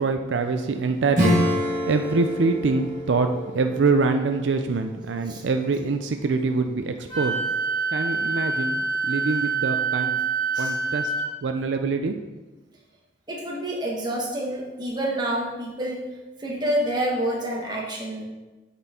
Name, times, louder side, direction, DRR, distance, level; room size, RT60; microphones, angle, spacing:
voice 1, 0.0-7.4 7.9-10.2 10.6-11.1 11.4-12.2, right 4 dB, 75° right, 6 dB, 0.4 m, -25 dB
Acoustic guitar / Strum, 1.1-5.4, left 1 dB, 40° right, 2.0 m, -27 dB
Wind instrument woodwind instrument, 7.1-11.3, right 4 dB, 25° left, 1.7 m, -26 dB
voice 2, 13.3-16.0 16.4-18.2, right 1 dB, 25° right, -2 dB, 1.3 m, -28 dB
8.4 x 4.4 x 4.3 m, 1.2 s
head